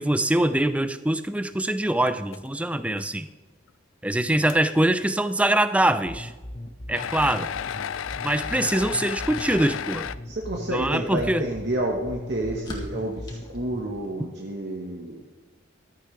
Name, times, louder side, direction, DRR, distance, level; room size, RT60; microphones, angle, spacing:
voice 1, 0.0-3.3 4.0-6.3 6.9-7.5 8.2-10.1 10.7-11.4, right 1 dB, 5° right, 12 dB, 0.4 m, -23 dB
sound 1, 2.0-2.5 2.9-3.0 3.7-3.8 4.5-4.6 6.9-10.1, left 8 dB, 80° left, 0.4 m, -33 dB
sound 2, 6.0-14.0, left 1 dB, 40° left, 1.3 m, -39 dB
sound 3, 8.2-14.4, equal, 20° left, 1.9 m, -47 dB
voice 2, 10.2-15.2, right 1 dB, 55° right, -1 dB, 1.4 m, -30 dB
15.0 x 13.5 x 3.3 m, 1.3 s
head